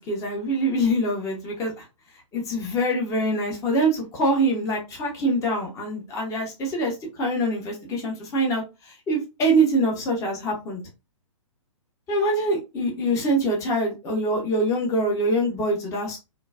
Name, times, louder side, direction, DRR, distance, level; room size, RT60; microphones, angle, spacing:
voice 1, 0.0-1.8 2.3-10.8 12.1-16.2, right 1 dB, 15° left, -1 dB, 0.9 m, -24 dB
3.8 x 2.2 x 2.3 m, 0.26 s
figure-of-eight pair, 120°, 18 cm